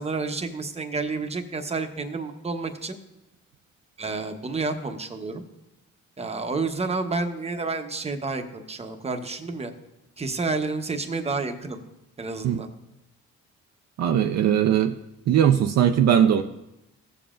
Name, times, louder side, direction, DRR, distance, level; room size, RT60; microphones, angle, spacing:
voice 1, 0.0-3.0 4.0-5.4 6.2-9.7 10.2-11.8 12.2-12.7, right 3 dB, 20° right, 6 dB, 0.9 m, -30 dB
voice 2, 14.0-14.9 15.3-16.4, right 9 dB, 60° right, 7 dB, 0.5 m, -19 dB
15.5 x 7.0 x 2.5 m, 0.89 s
cardioid pair, 90°, 30 cm